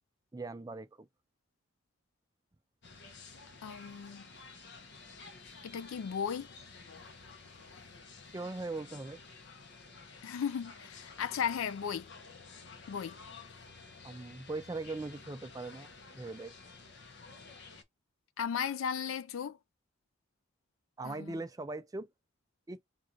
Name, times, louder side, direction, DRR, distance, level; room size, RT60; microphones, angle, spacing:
voice 1, 0.3-1.1 8.3-9.2 14.0-16.7 21.0-22.1 22.7-22.8, right 2 dB, 15° right, 0.3 m, -40 dB
washington restfestival, 2.8-17.8, left 4 dB, 55° left, 0.7 m, -52 dB
voice 2, 3.6-4.3 5.6-6.5 10.2-12.1 12.9-13.2 18.4-19.6 21.0-21.4, left 7 dB, 85° left, 0.4 m, -36 dB
3.8 x 2.5 x 4.3 m
head